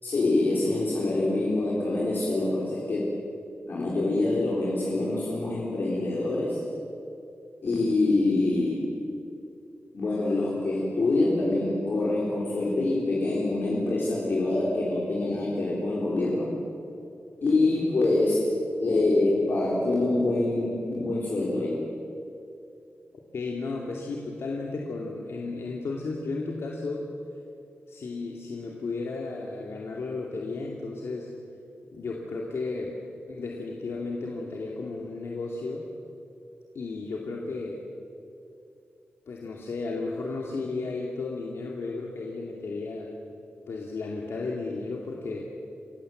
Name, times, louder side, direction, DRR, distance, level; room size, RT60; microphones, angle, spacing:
voice 1, 0.0-3.1 3.7-6.6 7.6-8.9 9.9-16.5 17.4-18.4 18.8-21.8, left 2 dB, 55° left, -4 dB, 3.9 m, -25 dB
voice 2, 23.3-27.1 27.9-31.3 31.9-33.0 33.3-35.8 36.7-37.8 39.3-43.1 43.7-45.5, left 3 dB, 75° left, -1 dB, 2.4 m, -34 dB
29.5 x 16.0 x 7.8 m, 2.6 s
wide cardioid pair, 175°, 4 cm